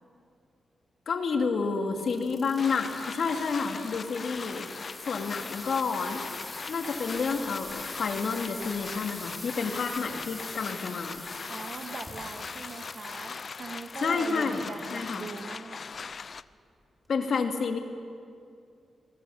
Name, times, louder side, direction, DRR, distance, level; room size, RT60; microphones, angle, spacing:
voice 1, 1.1-4.7 5.0-6.4 6.7-11.3 14.0-15.3 17.1-17.8, left 5 dB, 60° left, 4 dB, 2.4 m, -30 dB
sound 1, 1.9-15.4 15.9-16.4 17.0-17.1, left 1 dB, 5° left, 3.6 m, -45 dB
sound 2, 2.6-16.4, left 5 dB, 45° left, 0.6 m, -40 dB
voice 2, 11.5-15.8, right 4 dB, 50° right, 5 dB, 2.1 m, -41 dB
27.0 x 22.0 x 7.1 m, 2.4 s
wide cardioid pair, 125°, 0 cm